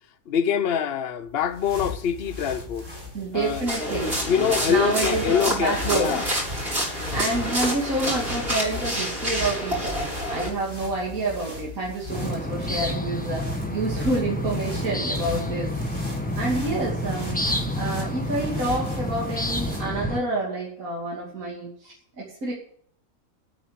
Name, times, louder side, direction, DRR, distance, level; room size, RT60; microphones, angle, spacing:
voice 1, 0.3-2.9 3.3-3.6 4.2-6.3, left 8 dB, 50° left, 0.9 m, -24 dB
sound 1, 1.3-20.0, left 3 dB, 20° right, 4.0 m, -38 dB
voice 2, 3.1-4.2 4.7-6.2 6.6-15.7 16.1-17.4 17.7-22.5, right 2 dB, 75° right, 3.1 m, -28 dB
sound 2, 3.7-10.5, equal, 45° right, 5.4 m, -28 dB
sound 3, 12.1-20.2, equal, 5° left, 1.0 m, -29 dB
9.1 x 8.7 x 9.0 m
omnidirectional pair, 1.5 m